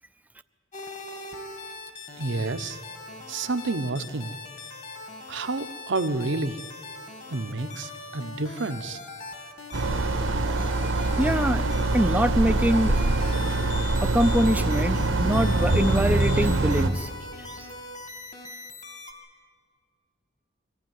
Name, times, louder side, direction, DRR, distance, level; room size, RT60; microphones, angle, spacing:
sound 1, 0.7-19.1, left 3 dB, 40° left, 2.4 m, -41 dB
voice 1, 2.2-2.8 3.3-4.3 5.3-6.6 7.3-9.0, right 3 dB, 65° right, 11 dB, 0.9 m, -29 dB
sound 2, 9.7-16.9, right 2 dB, 80° right, 1.3 m, -24 dB
voice 2, 10.8-11.7 11.9-13.2 14.0-17.1 17.6-17.7, equal, 10° right, 10 dB, 0.6 m, -24 dB
23.5 x 15.0 x 9.4 m, 2.1 s
head